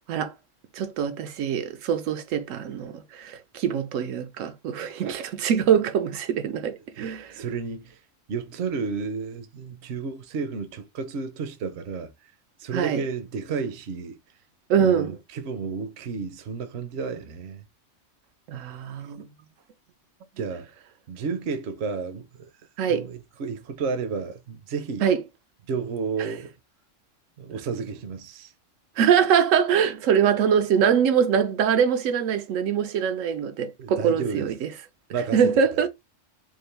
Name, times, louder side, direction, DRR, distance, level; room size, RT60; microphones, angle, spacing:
voice 1, 0.7-7.4 12.7-13.0 14.7-15.2 18.5-19.3 22.8-23.1 25.0-25.2 26.2-26.3 29.0-34.7 35.3-35.9, right 7 dB, 90° right, 1.0 m, -23 dB
voice 2, 7.0-8.0 8.3-12.1 12.6-14.2 14.8-17.6 20.4-20.7 21.1-22.5 22.9-25.1 25.7-26.5 27.4-28.5 33.8-34.5 35.1-35.5, right 5 dB, 60° right, 0.8 m, -32 dB
3.8 x 2.5 x 3.2 m
omnidirectional pair, 1.3 m